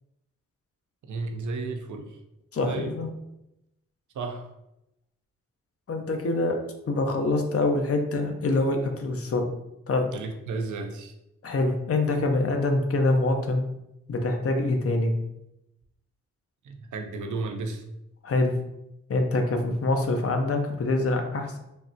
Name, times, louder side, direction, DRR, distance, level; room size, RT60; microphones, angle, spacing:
voice 1, 1.0-2.2 2.6-3.0 4.1-4.5 10.1-11.1 16.6-17.8, right 3 dB, 65° right, 5 dB, 0.5 m, -33 dB
voice 2, 2.5-3.1 5.9-6.6 6.9-9.5 9.9-10.1 11.4-13.6 14.1-15.1 18.2-18.6 19.1-21.6, left 2 dB, 45° left, 4 dB, 0.6 m, -25 dB
3.3 x 2.0 x 2.7 m, 0.87 s
supercardioid pair, 40°, 32 cm